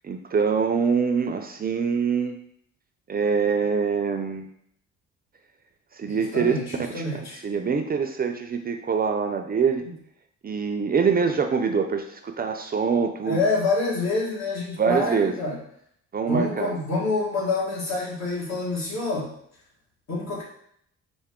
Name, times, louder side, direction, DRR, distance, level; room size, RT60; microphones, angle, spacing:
voice 1, 0.0-2.3 3.1-4.5 6.0-6.5 6.9-9.8 10.4-13.4 14.8-15.3 16.1-16.8, right 6 dB, 30° right, 6 dB, 0.4 m, -24 dB
voice 2, 6.0-7.4 13.2-15.6 16.3-19.3 20.1-20.4, left 3 dB, 60° left, -4 dB, 1.8 m, -27 dB
4.8 x 2.6 x 3.6 m, 0.69 s
cardioid pair, 90°, 30 cm